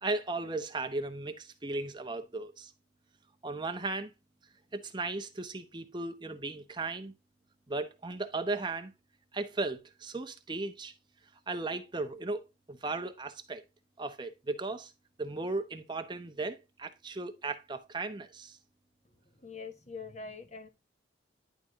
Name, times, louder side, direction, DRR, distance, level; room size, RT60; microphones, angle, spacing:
voice 1, 0.0-2.7 3.4-4.1 4.7-7.1 7.7-8.9 9.3-10.9 11.5-12.4 12.7-13.6 14.0-14.9 15.2-18.6, right 3 dB, 25° right, 0.9 m, -36 dB
voice 2, 19.4-20.7, left 4 dB, 35° left, 1.3 m, -43 dB
10.5 x 4.2 x 3.6 m
head